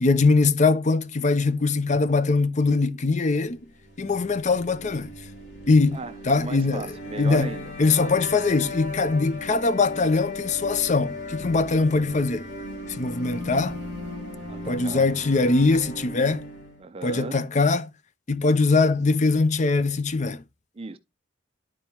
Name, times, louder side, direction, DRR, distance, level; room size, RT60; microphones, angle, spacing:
voice 1, 0.0-3.6 4.0-5.1 5.7-6.0 6.3-6.9 7.2-7.5 7.8-12.5 12.9-13.8 14.7-16.4 17.0-17.9 18.3-20.4, left 3 dB, 40° left, 0.5 m, -22 dB
sound 1, 3.8-16.8, left 2 dB, 65° left, 2.7 m, -37 dB
voice 2, 5.9-8.1 14.5-15.1 16.8-17.5 20.8-21.0, right 3 dB, 30° right, 0.5 m, -37 dB
11.5 x 4.5 x 2.9 m
head